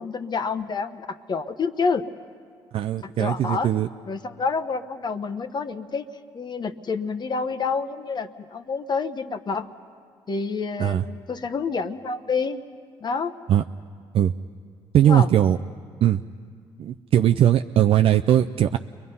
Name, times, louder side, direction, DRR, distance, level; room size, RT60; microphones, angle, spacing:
voice 1, 0.0-2.1 3.0-3.7 4.1-6.1 6.3-9.7 10.3-12.6 13.0-13.3 15.0-15.3, left 4 dB, 40° left, 9 dB, 1.0 m, -28 dB
voice 2, 2.7-3.9 10.8-11.0 13.5-13.6 14.1-14.3 14.9-15.6 16.0-16.2 16.8-18.8, right 11 dB, 60° right, 6 dB, 0.5 m, -19 dB
29.5 x 22.0 x 5.5 m, 2.1 s
supercardioid pair, 65°, 11 cm